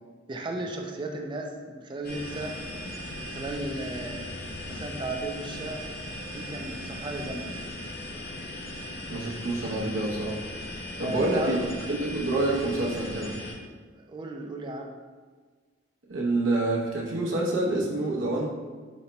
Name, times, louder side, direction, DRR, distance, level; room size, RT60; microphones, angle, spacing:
voice 1, 0.3-2.6 3.2-4.3 4.7-5.8 6.3-7.5 11.0-11.6 14.0-14.9, right 2 dB, 25° right, 2 dB, 0.3 m, -35 dB
sound 1, 2.0-13.5, left 1 dB, 50° left, 0.6 m, -38 dB
voice 2, 9.1-10.4 11.0-13.4 16.1-18.5, right 2 dB, 90° right, -3 dB, 0.8 m, -27 dB
4.1 x 2.2 x 3.9 m, 1.5 s
head